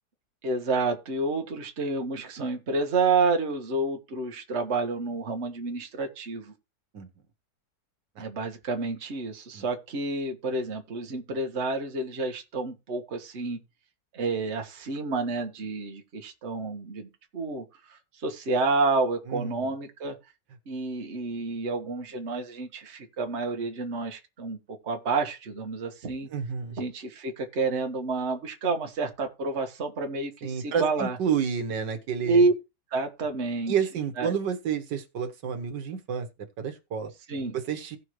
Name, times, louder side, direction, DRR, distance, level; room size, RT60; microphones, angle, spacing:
voice 1, 0.4-6.5 8.2-13.6 14.1-20.2 20.7-26.3 26.8-31.2 32.3-32.5 32.9-33.7 34.2-34.3 37.3-37.6, right 3 dB, 40° right, 1.5 m, -29 dB
voice 2, 19.3-19.7 26.3-26.8 30.4-32.4 33.7-36.3 36.6-37.1 37.5-38.0, right 7 dB, 85° right, 1.8 m, -30 dB
17.0 x 5.6 x 3.1 m
omnidirectional pair, 1.8 m